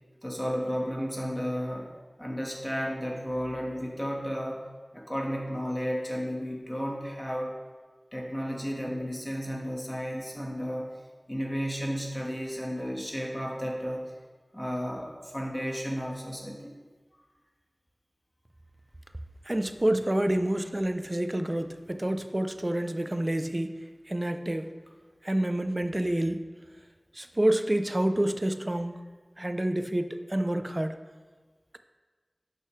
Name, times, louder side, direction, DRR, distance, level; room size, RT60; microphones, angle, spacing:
voice 1, 0.2-1.9 2.2-4.7 4.9-7.5 8.1-10.9 11.3-14.0 14.5-16.7, equal, 10° left, -2 dB, 1.5 m, -33 dB
voice 2, 19.5-23.8 24.1-24.7 25.2-26.5 27.1-28.9 29.4-31.0, right 1 dB, 30° right, 8 dB, 0.6 m, -28 dB
11.5 x 6.7 x 3.3 m, 1.4 s
wide cardioid pair, 50°, 0 cm